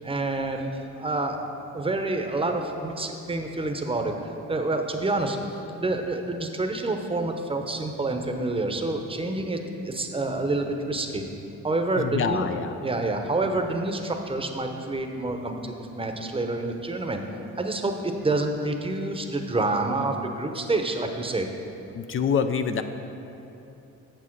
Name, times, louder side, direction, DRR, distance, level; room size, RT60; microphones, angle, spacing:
voice 1, 0.0-1.4 1.7-9.6 9.8-11.3 11.6-12.5 12.8-17.2 17.5-21.5, right 2 dB, 20° right, 4 dB, 0.8 m, -28 dB
voice 2, 12.0-12.8 21.9-22.8, left 6 dB, 45° left, 9 dB, 0.4 m, -26 dB
8.6 x 6.8 x 4.5 m, 2.9 s
cardioid pair, 90°, 30 cm